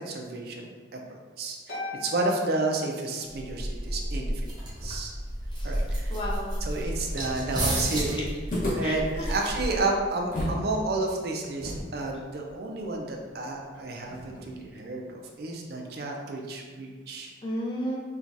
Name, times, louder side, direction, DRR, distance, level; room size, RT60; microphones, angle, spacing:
voice 1, 0.0-4.3 4.8-5.1 5.6-6.2 6.6-8.3 8.7-17.3, right 2 dB, 55° right, 1 dB, 0.4 m, -31 dB
Harp, 1.7-3.6, left 2 dB, 85° left, 1.1 m, -40 dB
sound 1, 3.4-10.0, equal, 25° right, 0.8 m, -32 dB
voice 2, 5.5-5.8 6.1-6.6 7.1-7.3 7.9-8.2 8.8-9.4 9.7-9.8 17.4-18.0, equal, 25° left, -2 dB, 0.5 m, -34 dB
sound 2, 8.5-10.7 10.9-11.0 11.6-14.7, left 1 dB, 45° left, 1.2 m, -35 dB
4.5 x 2.4 x 2.6 m, 1.5 s
head